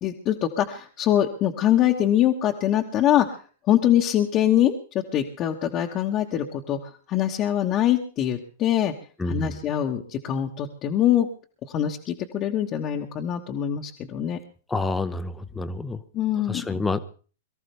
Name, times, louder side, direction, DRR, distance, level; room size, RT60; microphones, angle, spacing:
voice 1, 0.0-3.4 3.7-4.7 5.1-8.9 9.2-11.3 11.7-14.4 16.1-16.8, left 11 dB, 35° left, 0 dB, 1.4 m, -23 dB
voice 2, 9.2-9.6 14.7-16.0 16.5-17.0, left 3 dB, 10° left, 12 dB, 1.0 m, -28 dB
23.0 x 14.0 x 3.4 m, 0.39 s
hypercardioid pair, 115°, 0 cm